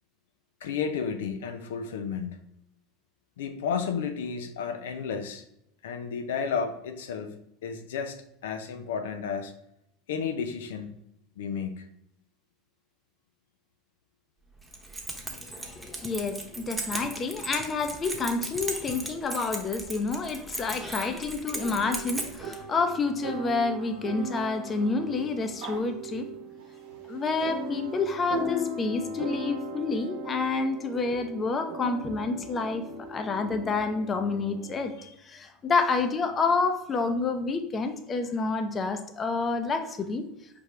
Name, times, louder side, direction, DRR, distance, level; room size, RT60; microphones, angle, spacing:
voice 1, 0.6-2.4 3.4-5.4 5.8-9.5 10.1-11.0 11.4-11.9 35.0-35.2, left 6 dB, 85° left, 7 dB, 0.5 m, -32 dB
Keys jangling, 14.6-22.6, right 2 dB, 10° right, 1.0 m, -37 dB
voice 2, 15.5-26.3 27.1-34.9 35.2-40.2, left 4 dB, 30° left, 7 dB, 0.7 m, -29 dB
sound 1, 21.6-34.9, equal, 70° right, 0.9 m, -38 dB
4.7 x 3.5 x 3.2 m, 0.78 s
hypercardioid pair, 95°, 0 cm